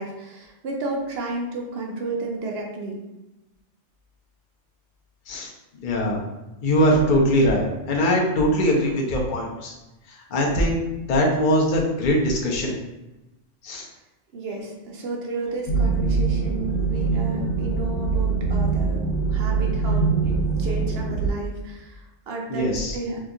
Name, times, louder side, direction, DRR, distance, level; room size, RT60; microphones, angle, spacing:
voice 1, 0.0-3.0 14.3-22.7 22.9-23.2, right 2 dB, 65° right, -1 dB, 0.8 m, -32 dB
voice 2, 5.8-6.3 6.6-9.7 10.1-12.7 13.6-13.9 22.5-23.0, equal, 50° left, -1 dB, 0.7 m, -21 dB
sound 1, 15.7-21.3, right 4 dB, 85° left, 1.1 m, -23 dB
2.8 x 2.4 x 3.6 m, 1.0 s
omnidirectional pair, 1.2 m